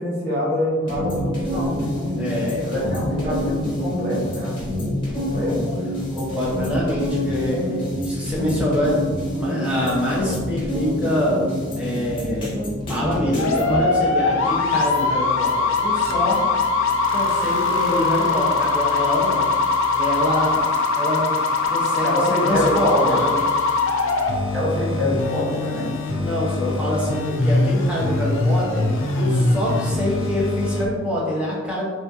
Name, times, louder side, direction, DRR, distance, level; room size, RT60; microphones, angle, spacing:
voice 1, 0.0-1.9 2.6-4.6 5.0-5.6 22.0-23.2 24.5-25.9, equal, 50° right, -7 dB, 1.4 m, -25 dB
sound 1, 0.9-13.8, left 1 dB, 25° left, 1.2 m, -27 dB
voice 2, 2.2-3.4 5.4-5.6 6.1-11.5 11.7-12.5 12.9-16.4 17.1-19.5 19.9-20.6 21.0-23.4 26.1-28.9 29.1-31.8, left 1 dB, 5° right, -7 dB, 1.0 m, -25 dB
sound 2, 13.4-30.9, left 3 dB, 70° left, 0.6 m, -22 dB
4.2 x 3.6 x 2.7 m, 1.5 s
head